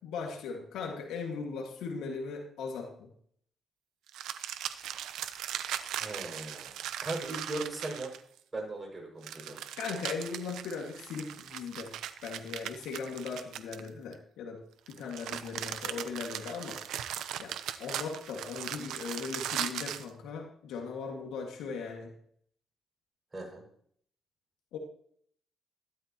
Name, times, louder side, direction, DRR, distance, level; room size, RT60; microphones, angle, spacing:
voice 1, 0.0-3.1 9.8-11.9 12.2-14.6 14.9-16.8 17.4-17.5 17.8-22.1 24.7-24.8, left 5 dB, 85° left, 1 dB, 2.2 m, -38 dB
sound 1, 4.1-8.4 9.2-14.1 14.9-20.1, right 10 dB, 85° right, 0.8 m, -39 dB
voice 2, 6.0-8.1 8.5-9.6 23.3-23.6, right 2 dB, 25° right, 0 dB, 6.5 m, -38 dB
15.0 x 12.5 x 3.1 m, 0.62 s
cardioid pair, 90°, 0 cm